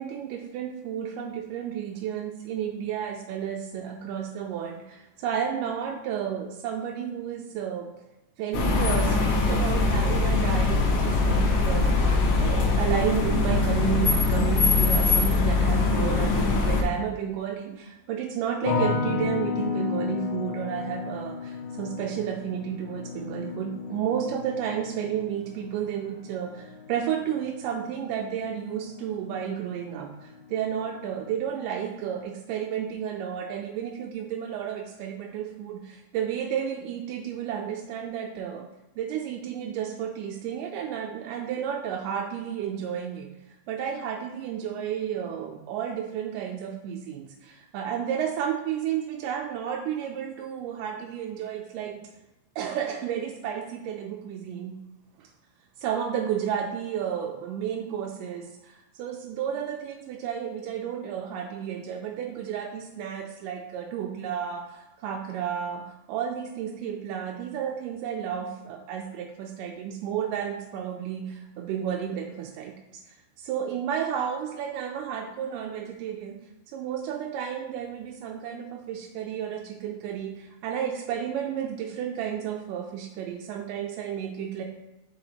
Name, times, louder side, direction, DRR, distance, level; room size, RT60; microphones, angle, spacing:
voice 1, 0.0-8.0 8.4-12.1 12.3-38.7 39.0-43.3 43.7-52.1 52.6-54.8 55.2-55.3 55.8-84.6, right 8 dB, 90° right, 1 dB, 2.2 m, -32 dB
sound 1, 8.5-16.8, left 3 dB, 90° left, 1.1 m, -22 dB
sound 2, 18.6-29.7 30.0-30.7, left 5 dB, 70° left, 2.6 m, -34 dB
7.0 x 5.1 x 2.9 m, 1.0 s
omnidirectional pair, 3.7 m